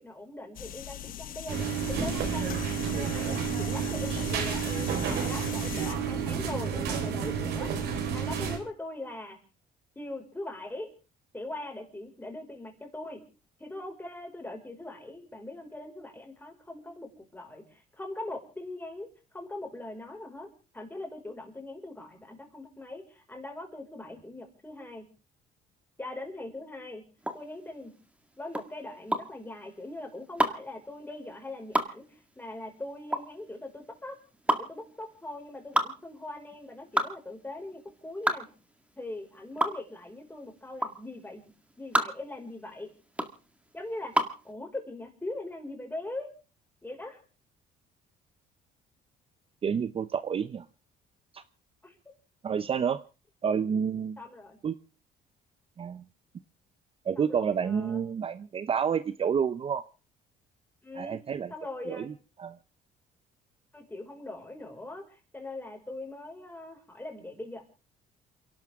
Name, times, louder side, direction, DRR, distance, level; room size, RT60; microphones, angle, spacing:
voice 1, 0.0-7.7 8.1-9.4 10.0-10.9 11.3-13.2 13.6-19.1 19.3-20.5 20.7-25.0 26.0-27.0 27.3-27.9 28.4-34.2 34.5-38.5 39.0-41.4 41.8-42.9 43.7-44.2 44.4-46.3 46.8-47.2 51.8-52.0 54.2-54.6 57.2-58.0 60.8-61.2 61.5-62.1 63.7-67.6, left 2 dB, 10° left, 3 dB, 5.3 m, -41 dB
sound 1, 0.6-6.0, left 10 dB, 60° left, 1.2 m, -40 dB
sound 2, 1.5-8.6, right 7 dB, 75° right, 4.7 m, -30 dB
sound 3, 27.2-44.4, right 1 dB, 5° right, 2.0 m, -31 dB
voice 2, 49.6-50.7 51.3-51.4 52.4-53.0 53.4-54.2 54.6-54.8 55.8-56.0 57.0-59.8 60.9-61.5 61.9-62.1 62.4-62.6, right 7 dB, 35° right, 13 dB, 0.7 m, -29 dB
28.5 x 12.0 x 3.6 m, 0.34 s
cardioid pair, 110°, 17 cm